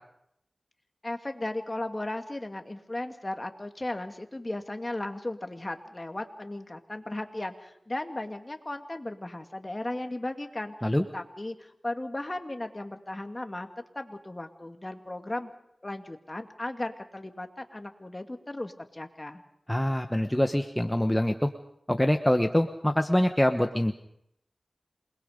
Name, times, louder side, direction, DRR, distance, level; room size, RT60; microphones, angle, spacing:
voice 1, 1.0-13.7 13.9-15.5 15.8-19.4, left 1 dB, 35° left, 5 dB, 2.4 m, -36 dB
voice 2, 19.7-21.5 21.9-23.9, left 1 dB, 10° left, 6 dB, 1.2 m, -24 dB
28.0 x 21.0 x 5.2 m, 0.78 s
cardioid pair, 45°, 0 cm